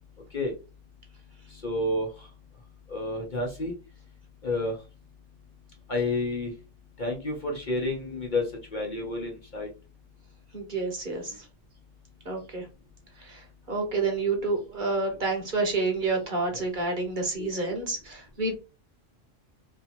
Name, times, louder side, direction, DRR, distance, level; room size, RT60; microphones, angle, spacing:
voice 1, 1.5-2.3 2.9-3.7 4.4-4.8 5.9-6.5 7.0-9.7 17.4-17.5, left 2 dB, 45° left, -1 dB, 0.8 m, -30 dB
voice 2, 10.5-11.5 12.2-12.7 13.1-18.5, right 3 dB, 40° right, 2 dB, 1.0 m, -29 dB
2.8 x 2.7 x 4.2 m, 0.31 s
omnidirectional pair, 1.3 m